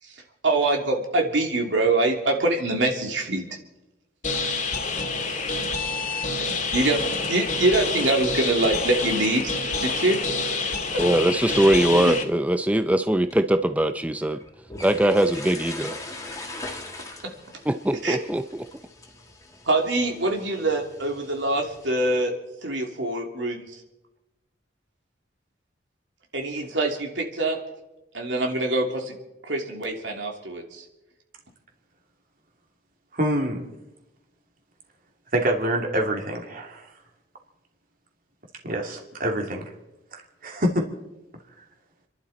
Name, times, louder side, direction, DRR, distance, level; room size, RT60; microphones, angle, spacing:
voice 1, 0.4-3.5 6.4-7.0 7.3-10.2 10.9-11.1 11.5-12.1 17.2-17.3 18.0-18.2 19.6-22.3 22.6-23.8 26.3-27.6 28.1-29.2 29.4-30.8, right 2 dB, 85° right, 2 dB, 2.8 m, -24 dB
sound 1, 4.2-12.2, left 3 dB, 40° left, 2.1 m, -27 dB
voice 2, 11.0-14.4 14.8-16.0 17.7-18.4, right 1 dB, 10° right, 9 dB, 0.4 m, -21 dB
sound 2, 13.2-21.9, left 2 dB, 20° left, 2.1 m, -41 dB
voice 3, 33.1-33.6 35.3-36.8 38.6-39.7 40.1-40.9, right 1 dB, 50° right, 1 dB, 2.8 m, -26 dB
29.5 x 11.5 x 4.2 m, 1.0 s
head